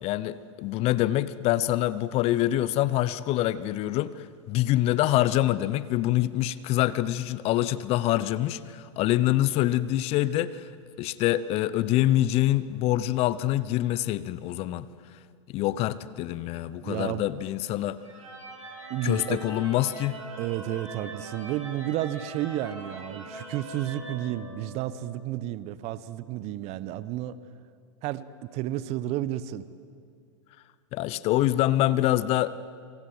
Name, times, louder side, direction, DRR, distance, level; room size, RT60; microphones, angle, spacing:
voice 1, 0.0-10.7 11.0-14.9 15.5-18.0 19.0-20.2 30.9-32.5, left 14 dB, 40° left, 17 dB, 0.9 m, -25 dB
voice 2, 16.8-17.3 18.9-19.4 20.4-27.4 28.0-28.3 28.5-29.6, right 13 dB, 40° right, 16 dB, 1.1 m, -31 dB
sound 1, 18.0-25.0, right 3 dB, 80° right, 7.1 m, -42 dB
27.0 x 25.0 x 7.9 m, 2.2 s
hypercardioid pair, 105°, 17 cm